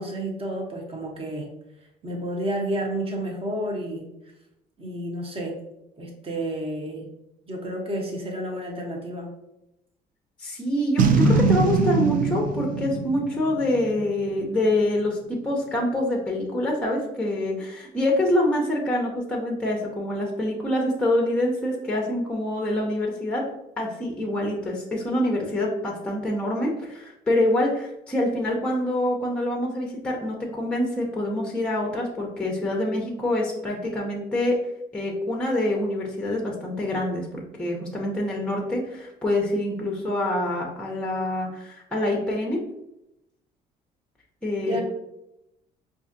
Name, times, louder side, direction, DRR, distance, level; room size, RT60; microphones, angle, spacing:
voice 1, 0.0-1.5 2.0-4.1 4.8-5.6 6.0-7.1 7.5-9.3 44.7-44.8, right 1 dB, 35° right, 0 dB, 1.0 m, -30 dB
voice 2, 10.4-23.4 23.8-34.6 34.9-42.6 44.4-44.8, left 1 dB, 5° left, 0 dB, 0.7 m, -26 dB
Boom, 11.0-14.3, right 4 dB, 55° right, 0.5 m, -22 dB
4.6 x 2.5 x 2.6 m, 0.86 s
cardioid pair, 110°, 17 cm